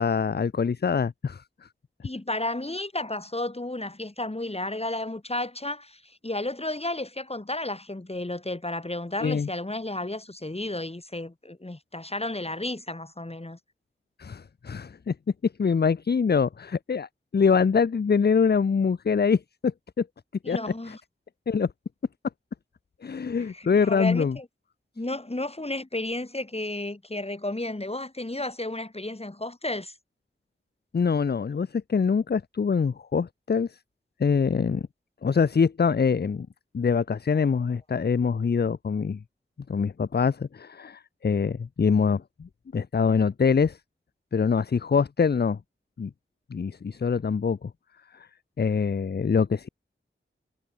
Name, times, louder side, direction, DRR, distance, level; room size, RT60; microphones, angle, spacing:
voice 1, 0.0-1.4 9.2-9.5 14.2-15.1 15.6-17.1 17.3-20.1 20.5-20.6 20.9-21.0 21.5-21.7 23.0-24.4 30.9-33.7 34.2-34.8 35.2-36.5 36.7-39.2 39.7-43.8 44.3-45.6 46.0-46.1 46.5-47.7 48.6-49.7, left 5 dB, 50° left, 0.6 m, -24 dB
voice 2, 2.0-13.6 20.4-21.0 23.4-24.5 25.0-30.0, left 2 dB, 30° left, 6.1 m, -32 dB
wide cardioid pair, 60°, 21 cm